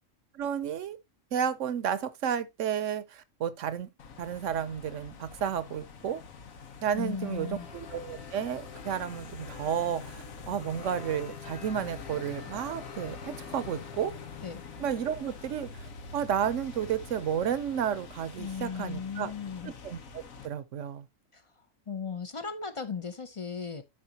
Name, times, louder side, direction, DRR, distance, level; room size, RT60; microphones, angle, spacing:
voice 1, 0.3-1.0 1.3-3.9 4.2-6.2 6.8-14.1 14.8-19.3 19.6-21.1, right 8 dB, 70° right, 1.0 m, -32 dB
sound 1, 4.0-20.5, left 5 dB, 85° left, 1.5 m, -44 dB
voice 2, 6.9-7.7 14.4-14.6 18.4-19.7 21.3-21.4 21.9-23.8, left 6 dB, 35° left, 0.5 m, -36 dB
12.0 x 5.1 x 2.8 m
omnidirectional pair, 1.4 m